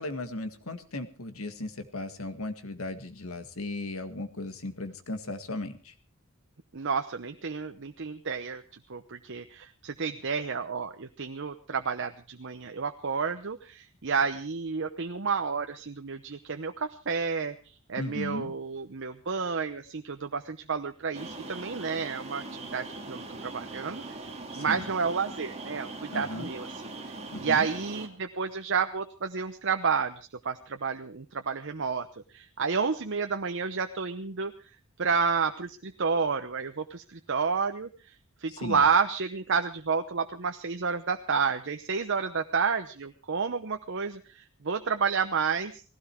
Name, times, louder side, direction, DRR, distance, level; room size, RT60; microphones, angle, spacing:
voice 1, 0.0-5.9 18.0-18.5 24.5-24.8 26.1-26.5 27.3-27.7 38.5-38.8, left 2 dB, 75° left, 9 dB, 1.9 m, -36 dB
voice 2, 6.7-8.6 8.9-24.2 24.6-27.1 27.4-34.5 35.0-38.1 38.4-45.8, right 5 dB, 60° right, 6 dB, 0.9 m, -30 dB
sound 1, 21.1-28.1, right 2 dB, 30° right, 2.3 m, -41 dB
18.5 x 16.0 x 4.6 m, 0.36 s
head